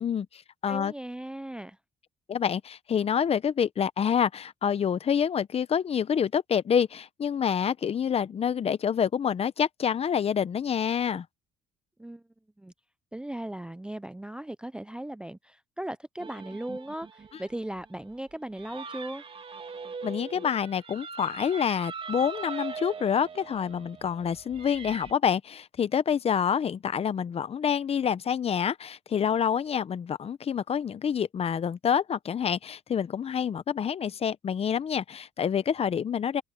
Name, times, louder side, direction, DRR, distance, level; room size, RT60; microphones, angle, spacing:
voice 1, 0.0-0.9 2.3-11.3 20.0-36.4, left 8 dB, 35° left, 0.8 m, -27 dB
voice 2, 0.7-1.8 12.0-12.2 12.6-12.7 13.1-19.2, right 1 dB, 5° right, 0.5 m, -37 dB
sound 1, 16.2-25.1, right 5 dB, 35° right, 2.7 m, -41 dB
cardioid pair, 110°, 17 cm